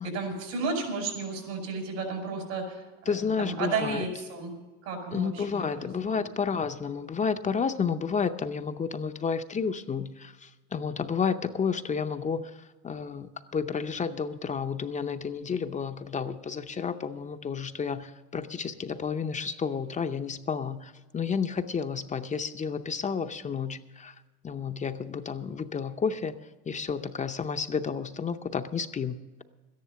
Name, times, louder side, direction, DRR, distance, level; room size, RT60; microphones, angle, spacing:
voice 1, 0.0-2.8 3.4-4.5 4.8-5.4, right 4 dB, 75° right, 3 dB, 5.2 m, -32 dB
voice 2, 3.1-4.0 5.1-24.1 24.4-26.4 26.7-29.4, left 6 dB, 25° left, 8 dB, 0.6 m, -31 dB
13.0 x 10.5 x 6.9 m, 1.2 s
supercardioid pair, 110°, 29 cm